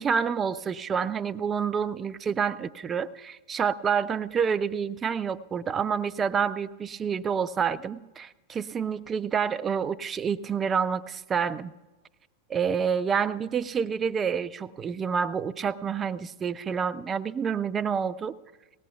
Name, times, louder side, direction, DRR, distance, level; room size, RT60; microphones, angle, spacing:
voice 1, 0.0-11.7 12.5-18.3, right 6 dB, 20° right, 15 dB, 0.4 m, -28 dB
19.5 x 17.5 x 2.3 m, 1.2 s
figure-of-eight pair, 90°, 0 cm